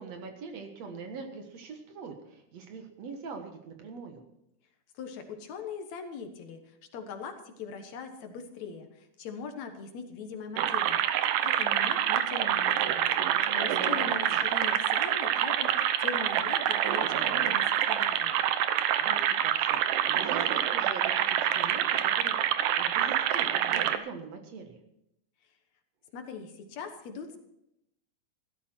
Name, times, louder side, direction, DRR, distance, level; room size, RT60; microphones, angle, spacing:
voice 1, 0.0-4.2 13.5-14.4 19.0-22.4 22.7-24.8, right 4 dB, 60° right, 5 dB, 2.6 m, -43 dB
voice 2, 4.9-18.3 26.1-27.4, left 5 dB, 65° left, 6 dB, 2.5 m, -41 dB
sound 1, 10.6-24.0, right 11 dB, 85° right, 2.4 m, -27 dB
16.0 x 12.5 x 4.5 m, 0.81 s
omnidirectional pair, 3.6 m